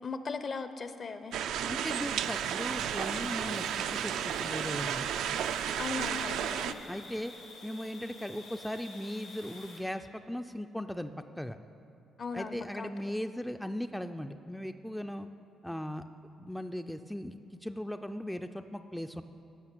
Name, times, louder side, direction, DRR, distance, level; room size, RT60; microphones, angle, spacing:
voice 1, 0.0-1.4 5.8-6.9 12.2-12.9, left 4 dB, 45° left, 11 dB, 0.6 m, -38 dB
sound 1, 1.3-9.8, left 2 dB, 90° left, 2.3 m, -50 dB
sound 2, 1.3-6.7, right 9 dB, 85° right, 0.3 m, -33 dB
voice 2, 1.7-5.1 6.9-7.3 7.6-11.1 11.4-11.6 12.3-15.3 15.6-16.0 16.4-19.2, equal, 5° left, 8 dB, 0.3 m, -38 dB
13.5 x 5.8 x 6.1 m, 2.8 s
cardioid pair, 90°, 0 cm